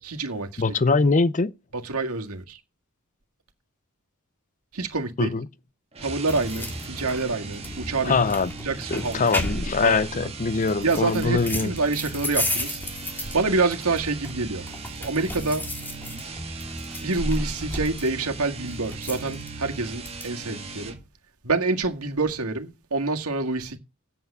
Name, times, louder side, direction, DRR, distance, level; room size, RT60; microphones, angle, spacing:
voice 1, 0.0-0.6 1.7-2.6 4.7-5.3 6.0-8.2 8.6-9.5 9.8-10.3 10.8-12.8 13.3-14.7 15.0-15.7 17.0-21.0 21.4-23.8, right 3 dB, 90° right, 1.8 m, -27 dB
voice 2, 0.6-1.5 5.2-5.5 8.0-8.5 8.9-11.7, left 4 dB, 35° left, 0.6 m, -22 dB
sound 1, 5.9-21.1, right 3 dB, 30° right, 2.0 m, -38 dB
sound 2, 6.3-20.3, left 1 dB, 10° left, 2.2 m, -34 dB
8.5 x 7.0 x 8.0 m
head